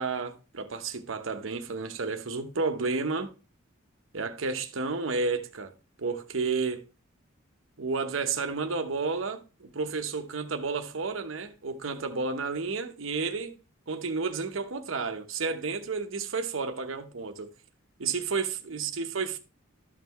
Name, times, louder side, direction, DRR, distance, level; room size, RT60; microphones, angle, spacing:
voice 1, 0.0-3.3 4.1-5.7 6.0-6.8 7.8-13.6 13.9-17.5 18.0-19.4, right 4 dB, 70° right, 0.9 m, -31 dB
12.0 x 5.7 x 3.1 m
head